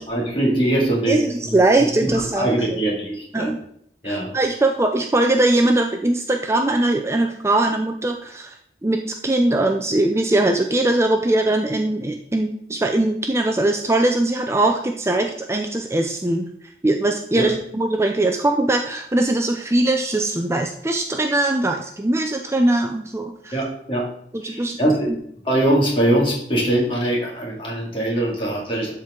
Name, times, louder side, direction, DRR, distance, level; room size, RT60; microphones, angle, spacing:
voice 1, 0.0-3.5 4.0-4.3 17.3-17.5 23.5-25.2 25.4-28.9, right 1 dB, 30° left, -3 dB, 2.4 m, -22 dB
voice 2, 1.1-2.5 3.3-3.6 4.0-8.6 8.8-16.5 16.8-23.6 24.3-24.8, right 2 dB, 15° right, 4 dB, 0.5 m, -21 dB
11.5 x 4.5 x 3.7 m, 0.68 s
head